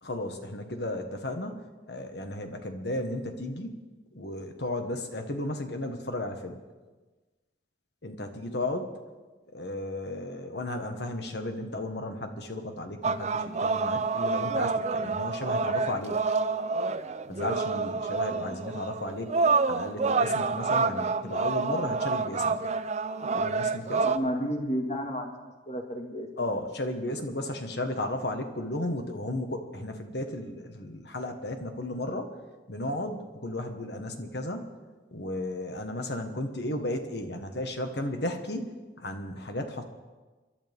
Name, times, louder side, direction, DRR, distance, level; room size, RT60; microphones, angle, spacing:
voice 1, 0.0-3.8 4.1-6.6 8.0-8.9 9.5-16.2 17.3-19.4 19.7-22.6 23.3-24.2 26.4-32.3 32.7-34.7 35.1-39.8, left 1 dB, 65° left, 5 dB, 1.6 m, -34 dB
sound 1, 13.0-24.2, right 4 dB, 40° right, 0.5 m, -28 dB
voice 2, 24.1-25.3 25.7-26.6, equal, 40° left, 2 dB, 2.1 m, -32 dB
27.0 x 12.0 x 3.7 m, 1.3 s
head